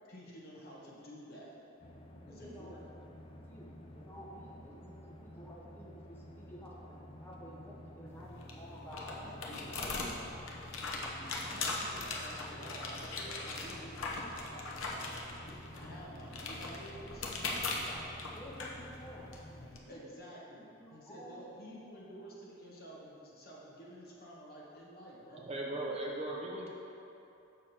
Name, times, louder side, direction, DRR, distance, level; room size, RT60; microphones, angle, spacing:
voice 1, 0.0-1.6 2.3-2.8 9.0-10.2 11.5-15.2 15.7-17.3 19.6-25.5, equal, 45° left, -5 dB, 1.3 m, -50 dB
sound 1, 1.8-19.7, equal, 25° left, 0.4 m, -52 dB
voice 2, 2.3-2.7 3.3-4.9 5.2-9.1 9.9-10.5 10.9-11.9 12.3-12.5 17.1-19.3 19.7-20.1 20.7-21.4, equal, 10° left, -6 dB, 0.9 m, -52 dB
sound 2, 8.1-19.8, left 3 dB, 70° left, 0.9 m, -40 dB
voice 3, 25.5-26.7, right 1 dB, 30° right, -2 dB, 0.6 m, -37 dB
6.7 x 6.1 x 4.4 m, 2.8 s
head